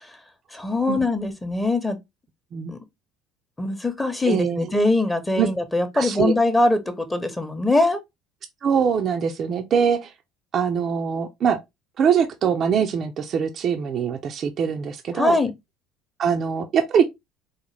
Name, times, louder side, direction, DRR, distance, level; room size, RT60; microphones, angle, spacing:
voice 1, 0.5-2.0 2.7-2.8 3.6-6.8 7.1-8.0 15.1-15.5, left 2 dB, 15° left, 0.8 m, -22 dB
voice 2, 4.3-4.7 5.4-5.5 5.9-6.3 8.6-10.1 10.5-11.6 12.0-15.4 16.2-17.0, right 7 dB, 50° right, 0.5 m, -23 dB
3.9 x 2.1 x 3.2 m
hypercardioid pair, 75°, 0 cm